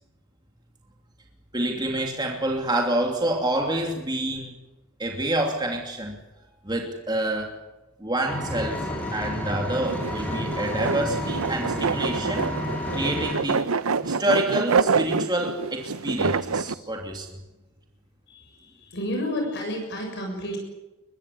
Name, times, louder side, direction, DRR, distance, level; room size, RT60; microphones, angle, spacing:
voice 1, 1.5-4.5 5.0-6.2 6.6-7.6 8.0-8.9 9.1-12.5 12.9-13.6 14.0-17.3, right 1 dB, 20° right, 1 dB, 2.9 m, -27 dB
Engine, 8.3-13.3, equal, 5° left, 5.5 m, -30 dB
sound 1, 9.9-16.7, right 5 dB, 80° right, 0.8 m, -26 dB
voice 2, 18.3-20.6, left 1 dB, 50° left, 2 dB, 7.0 m, -31 dB
23.5 x 22.0 x 8.6 m, 1.1 s
head